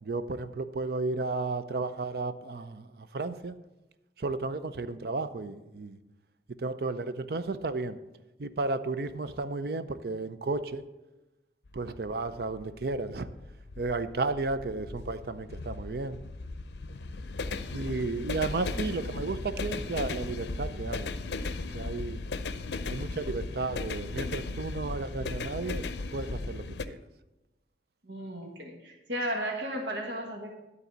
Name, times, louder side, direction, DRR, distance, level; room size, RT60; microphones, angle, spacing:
voice 1, 0.0-3.6 4.2-6.0 6.6-8.0 8.4-10.8 11.7-13.3 13.8-16.2 17.7-21.1 21.7-22.2 22.9-25.8 26.1-27.0, right 3 dB, 60° right, 11 dB, 0.5 m, -33 dB
sound 1, 11.7-26.9, left 3 dB, 75° left, 0.5 m, -36 dB
voice 2, 28.0-30.5, equal, 85° right, 1 dB, 1.6 m, -34 dB
12.0 x 4.1 x 8.0 m, 1.0 s
head